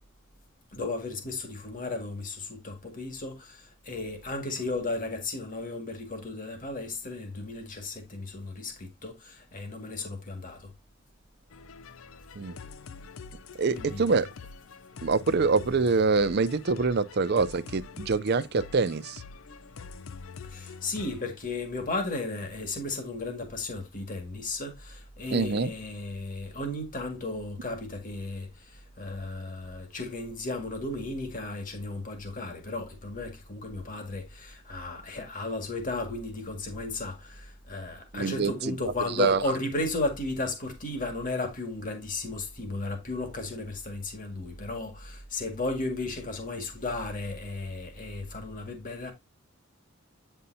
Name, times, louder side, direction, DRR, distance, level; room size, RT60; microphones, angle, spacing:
voice 1, 0.7-10.7 13.7-14.1 20.4-49.1, left 2 dB, 40° left, 1.9 m, -35 dB
sound 1, 11.5-21.2, left 5 dB, 85° left, 0.5 m, -45 dB
voice 2, 13.6-14.3 15.0-19.2 25.3-25.7 38.1-38.7 39.2-39.4, right 4 dB, 50° right, 0.5 m, -25 dB
8.8 x 5.5 x 2.7 m
head